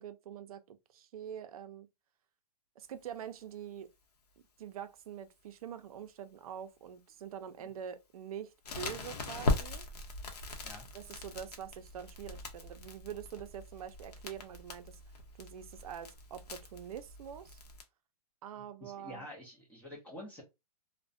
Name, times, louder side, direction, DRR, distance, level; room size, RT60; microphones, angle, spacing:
voice 1, 0.0-1.9 2.8-3.9 4.6-9.9 10.9-15.0 15.4-17.6 18.4-19.3, right 9 dB, 65° right, 0.5 m, -45 dB
Crackle, 8.6-17.8, left 2 dB, 90° left, 0.8 m, -39 dB
voice 2, 18.6-20.4, left 1 dB, 10° left, 0.5 m, -48 dB
2.4 x 2.1 x 2.5 m
hypercardioid pair, 150°, 20 cm